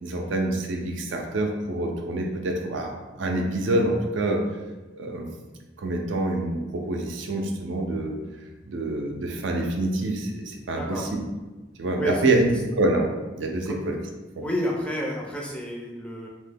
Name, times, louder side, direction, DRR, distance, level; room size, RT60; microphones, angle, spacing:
voice 1, 0.0-4.4 4.9-5.3 5.8-8.2 8.7-11.2 11.8-12.5 12.8-13.1 13.4-13.9 14.4-14.5, right 2 dB, 85° right, 2 dB, 0.5 m, -26 dB
voice 2, 10.7-11.1 12.0-12.4 13.7-13.8 14.4-16.3, equal, 5° left, -2 dB, 0.4 m, -30 dB
2.9 x 2.1 x 3.4 m, 1.2 s
head